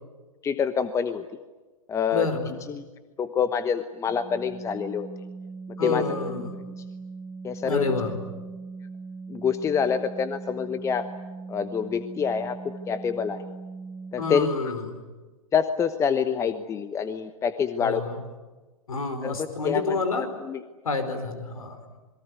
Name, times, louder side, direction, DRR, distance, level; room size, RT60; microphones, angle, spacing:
voice 1, 0.4-1.2 1.9-2.3 2.7-2.8 3.2-5.1 5.8-6.0 6.3-6.5 7.4-7.9 9.3-11.1 11.5-13.4 14.1-14.5 15.5-18.0 19.2-20.6, left 7 dB, 15° left, 11 dB, 1.0 m, -26 dB
voice 2, 2.1-2.5 5.8-6.6 7.6-8.1 14.2-14.8 17.8-18.2 18.9-20.3 20.8-21.8, left 4 dB, 75° left, 9 dB, 5.0 m, -28 dB
Organ, 4.1-14.6, right 4 dB, 5° right, 4.3 m, -40 dB
27.0 x 22.0 x 9.6 m, 1.2 s
figure-of-eight pair, 115°, 18 cm